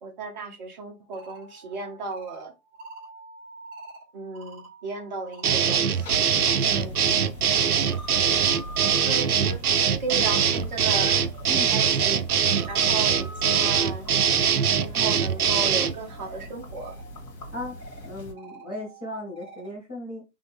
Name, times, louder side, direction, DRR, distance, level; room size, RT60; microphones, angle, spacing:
voice 1, 0.0-2.5 4.1-6.2 9.0-12.2 12.7-14.1 14.7-17.0, right 4 dB, 25° right, 0.9 m, -35 dB
sound 1, 0.9-6.2 6.5-19.8, right 2 dB, 10° right, 1.2 m, -47 dB
sound 2, 5.4-15.9, right 7 dB, 65° right, 0.7 m, -22 dB
sound 3, 6.0-18.3, equal, 70° left, 2.3 m, -41 dB
voice 2, 6.6-7.2 11.5-11.7 14.9-15.1 17.5-17.8 18.0-20.2, left 1 dB, 5° left, 0.5 m, -37 dB
4.2 x 3.4 x 3.4 m
figure-of-eight pair, 145°, 49 cm